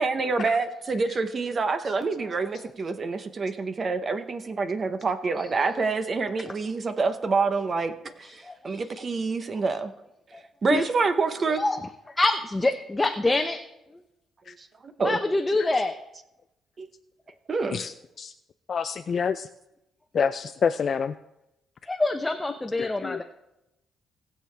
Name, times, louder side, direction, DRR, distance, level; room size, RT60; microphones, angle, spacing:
voice 1, 0.0-9.9 10.6-11.6 15.0-15.2 16.8-16.9 17.5-17.8, right 4 dB, 40° right, 9 dB, 0.9 m, -27 dB
voice 2, 5.4-5.8 8.2-8.8 9.5-9.6 10.3-10.4 10.7-10.8 11.5-11.8 12.2-13.6 15.0-16.0 21.8-23.2, left 2 dB, 15° left, 5 dB, 0.7 m, -26 dB
voice 3, 18.7-19.5 20.1-21.1 22.8-23.2, left 6 dB, 50° left, 9 dB, 0.4 m, -27 dB
19.0 x 6.7 x 3.4 m, 0.89 s
cardioid pair, 90°, 0 cm